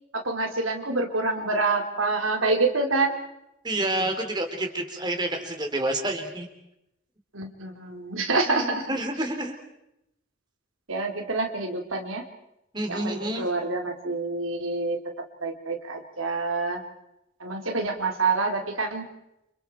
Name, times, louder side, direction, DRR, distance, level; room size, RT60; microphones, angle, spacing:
voice 1, 0.1-3.1 7.3-8.9 10.9-12.2 12.9-15.0 15.4-16.8 17.4-19.0, right 3 dB, 85° right, 3 dB, 3.4 m, -27 dB
voice 2, 3.6-6.5 8.5-9.5 12.7-13.4, right 1 dB, 20° right, 4 dB, 3.5 m, -29 dB
30.0 x 28.0 x 4.6 m, 0.84 s
head